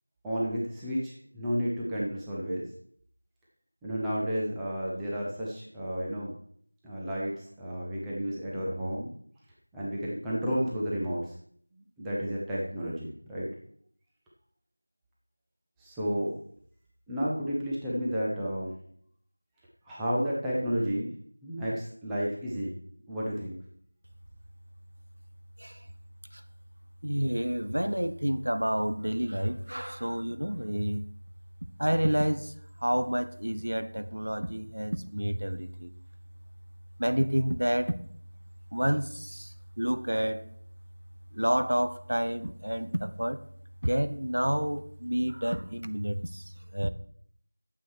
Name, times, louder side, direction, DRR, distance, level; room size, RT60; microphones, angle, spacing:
voice 1, 0.2-2.7 3.8-6.3 6.8-9.1 9.7-11.3 12.0-13.5 15.8-16.4 17.1-18.8 19.9-21.1 21.4-22.8 23.1-23.6, equal, ahead, -8 dB, 0.4 m, -31 dB
voice 2, 27.0-31.1 31.8-32.5 32.8-35.9 37.0-37.9 38.7-40.5 41.3-43.4 43.8-46.9, equal, 80° right, 11 dB, 0.8 m, -29 dB
9.3 x 7.1 x 4.7 m, 0.62 s
figure-of-eight pair, 180°, 0 cm